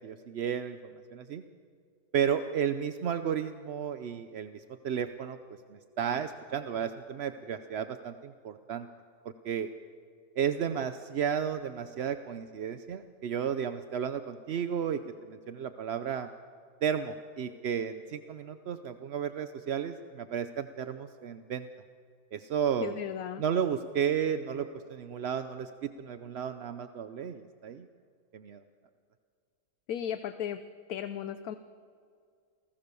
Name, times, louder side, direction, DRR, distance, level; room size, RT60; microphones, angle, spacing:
voice 1, 0.0-1.4 2.1-5.4 5.7-8.9 9.4-9.7 10.4-15.0 15.3-16.3 16.8-21.7 22.3-23.0 23.4-27.9 28.3-28.6, right 8 dB, 55° right, 10 dB, 0.7 m, -33 dB
voice 2, 22.8-23.4 29.9-30.6 30.9-31.6, left 9 dB, 70° left, 11 dB, 1.2 m, -35 dB
28.0 x 19.0 x 6.8 m, 2.3 s
omnidirectional pair, 1.7 m